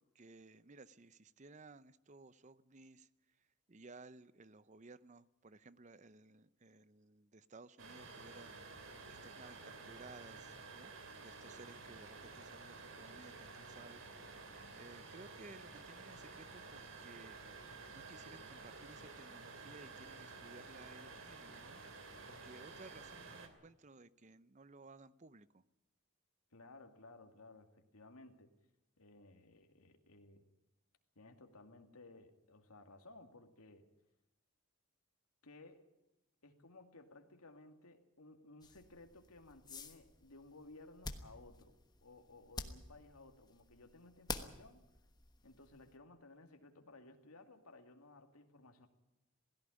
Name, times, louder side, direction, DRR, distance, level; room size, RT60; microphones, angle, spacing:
voice 1, 0.0-3.1 3.7-10.9 11.2-14.0 14.7-17.4 17.9-21.8 22.3-25.6, right 3 dB, 30° right, 17 dB, 0.6 m, -58 dB
sound 1, 7.8-23.5, right 3 dB, 60° right, 2.7 m, -52 dB
voice 2, 26.5-27.7 27.9-28.5 29.0-30.5 31.2-33.9 35.4-35.9 36.4-44.8 45.4-48.9, left 2 dB, 85° left, 6 dB, 2.3 m, -58 dB
sound 2, 38.6-46.0, left 3 dB, 20° left, 1.2 m, -50 dB
17.5 x 16.5 x 9.9 m, 0.93 s
head